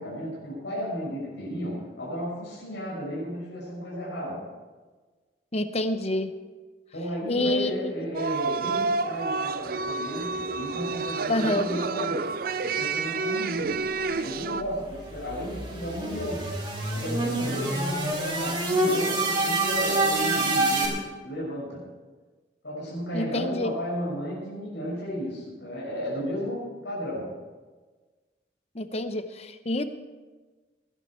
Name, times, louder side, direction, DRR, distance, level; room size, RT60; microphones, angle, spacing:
voice 1, 0.0-4.5 6.9-16.5 16.9-21.9 22.6-27.4, equal, 85° left, -6 dB, 6.0 m, -33 dB
voice 2, 5.5-6.3 7.3-8.1 11.3-11.7 23.1-23.7 28.7-29.8, left 1 dB, 35° left, 10 dB, 0.8 m, -27 dB
sound 1, 8.1-14.6, right 4 dB, 55° right, 0.5 m, -29 dB
sound 2, 14.5-20.9, right 2 dB, 25° right, 3.4 m, -27 dB
19.5 x 11.0 x 4.4 m, 1.3 s
head